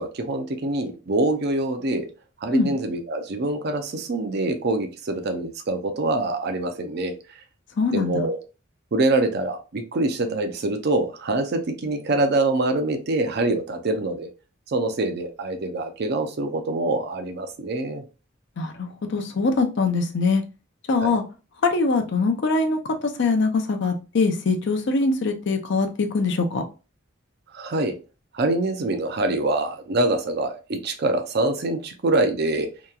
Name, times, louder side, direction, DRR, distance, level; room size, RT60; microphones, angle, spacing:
voice 1, 0.0-2.1 2.4-7.4 7.9-8.4 8.9-14.3 14.7-18.0 21.0-21.2 27.5-27.9 28.3-32.7, right 2 dB, 55° right, 7 dB, 0.5 m, -25 dB
voice 2, 7.8-8.3 18.6-20.4 20.9-21.2 21.6-26.6, left 3 dB, 60° left, 6 dB, 0.5 m, -23 dB
2.9 x 2.2 x 2.3 m, 0.32 s
head